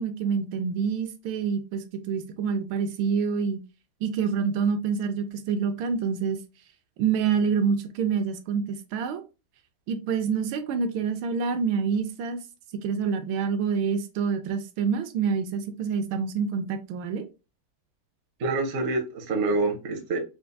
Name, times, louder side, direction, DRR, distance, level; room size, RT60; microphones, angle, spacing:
voice 1, 0.0-3.6 4.0-6.4 7.0-9.2 9.9-12.4 12.8-17.3, right 6 dB, 80° right, 1.4 m, -27 dB
voice 2, 18.4-20.2, right 3 dB, 60° right, 0.8 m, -26 dB
4.4 x 2.3 x 2.5 m
omnidirectional pair, 2.2 m